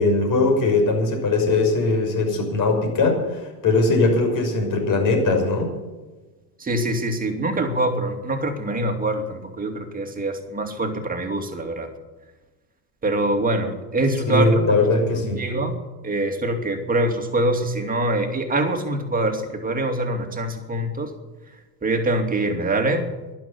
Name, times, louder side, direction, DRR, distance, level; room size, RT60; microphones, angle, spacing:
voice 1, 0.0-5.7 14.2-15.5, left 3 dB, 40° left, 2 dB, 6.2 m, -20 dB
voice 2, 6.7-11.9 13.0-14.5 15.4-15.7 16.0-21.1 21.8-23.1, right 1 dB, 15° right, 4 dB, 2.7 m, -24 dB
12.0 x 11.0 x 9.7 m, 1.2 s
hypercardioid pair, 100°, 48 cm